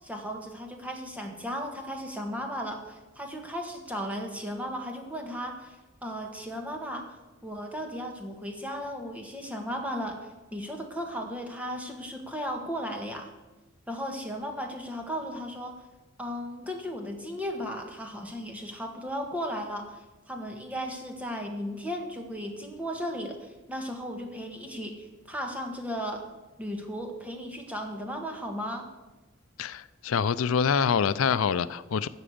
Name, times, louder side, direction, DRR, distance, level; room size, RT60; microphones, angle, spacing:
voice 1, 0.0-7.2 7.4-13.3 13.9-15.8 16.2-26.2 26.6-28.9, equal, 5° right, 3 dB, 1.4 m, -35 dB
voice 2, 29.6-32.1, left 6 dB, 75° left, 16 dB, 0.4 m, -26 dB
13.0 x 5.0 x 8.5 m, 1.1 s
head